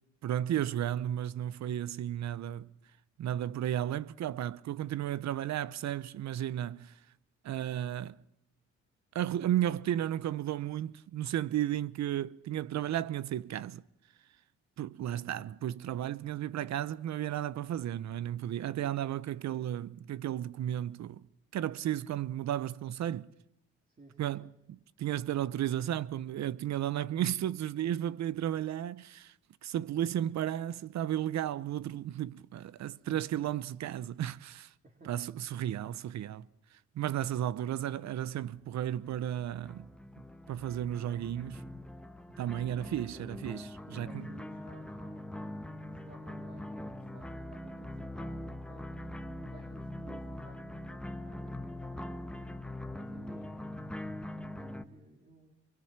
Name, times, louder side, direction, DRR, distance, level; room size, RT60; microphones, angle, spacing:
voice 1, 0.2-2.7 3.2-6.9 7.4-8.2 9.1-13.8 14.8-21.3 21.5-23.3 24.2-24.5 25.0-29.3 29.6-34.7 35.1-36.5 36.9-39.9 40.5-41.7 42.4-44.3, right 11 dB, 65° right, 0.8 m, -34 dB
voice 2, 23.9-24.5 32.9-33.5 34.8-35.2 42.7-43.0 43.8-45.3 45.9-52.1 52.9-53.7 54.4-55.5, right 3 dB, 30° right, 3.8 m, -56 dB
sound 1, 38.5-54.9, left 1 dB, 5° left, 1.3 m, -43 dB
24.0 x 23.0 x 6.0 m
cardioid pair, 90°, 30 cm